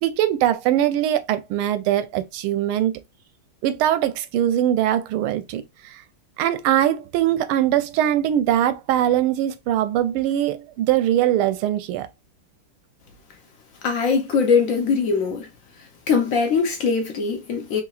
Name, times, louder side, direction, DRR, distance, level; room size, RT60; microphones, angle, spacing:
voice 1, 0.0-3.0 3.6-6.0 6.4-12.1, right 11 dB, 85° right, 1.5 m, -21 dB
voice 2, 13.8-15.5 16.1-17.8, left 5 dB, 75° left, 0.7 m, -21 dB
3.8 x 3.2 x 2.3 m
omnidirectional pair, 2.3 m